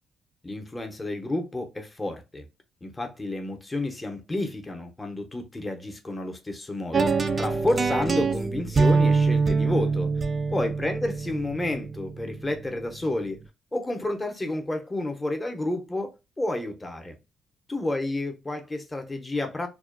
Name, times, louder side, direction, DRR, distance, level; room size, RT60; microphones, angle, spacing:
voice 1, 0.4-2.5 2.8-10.1 10.5-13.4 13.7-17.2 17.7-19.7, left 1 dB, 20° left, 0.7 m, -30 dB
sound 1, 6.9-13.0, right 4 dB, 35° right, 0.4 m, -24 dB
2.4 x 2.2 x 2.4 m
cardioid pair, 90°, 0 cm